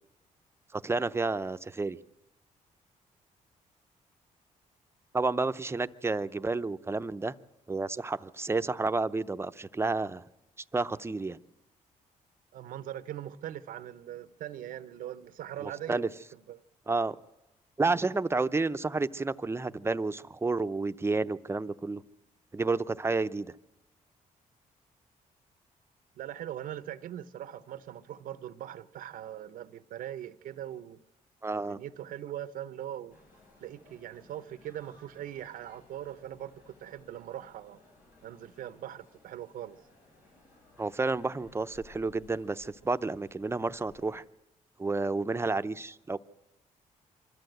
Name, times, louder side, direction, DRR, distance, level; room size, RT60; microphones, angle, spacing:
voice 1, 0.7-2.0 5.1-7.3 7.7-10.2 10.7-11.4 15.6-16.1 16.9-17.2 17.8-22.0 22.5-23.5 31.4-31.8 40.8-44.2 44.8-46.2, right 3 dB, 20° right, 0.6 m, -30 dB
voice 2, 12.5-16.0 16.5-16.6 26.2-31.0 31.5-33.2 33.6-37.8 38.2-39.8, right 11 dB, 80° right, 0.8 m, -41 dB
sound 1, 33.1-44.2, left 2 dB, 90° left, 6.7 m, -60 dB
24.0 x 13.5 x 7.9 m
cardioid pair, 90°, 14 cm